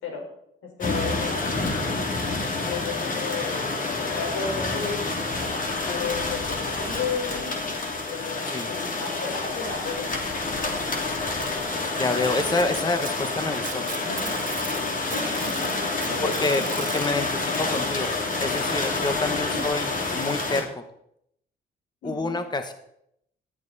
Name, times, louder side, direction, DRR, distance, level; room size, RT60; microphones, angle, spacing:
voice 1, 0.6-10.1 12.5-12.7 14.1-14.3 15.1-16.8 18.2-18.4 19.3-19.7 22.0-22.3, left 5 dB, 90° left, 1 dB, 4.6 m, -35 dB
sound 1, 0.8-20.6, left 3 dB, 40° left, 2.9 m, -28 dB
voice 2, 12.0-13.9 16.2-20.8 22.0-22.7, left 3 dB, 20° left, 8 dB, 1.3 m, -28 dB
Packing tape duct tape, 12.4-14.8 15.1-17.1 18.2-18.3 18.8-18.9 19.8-19.9, right 6 dB, 40° right, 1.9 m, -37 dB
15.5 x 11.0 x 4.1 m, 0.75 s
cardioid pair, 90°, 20 cm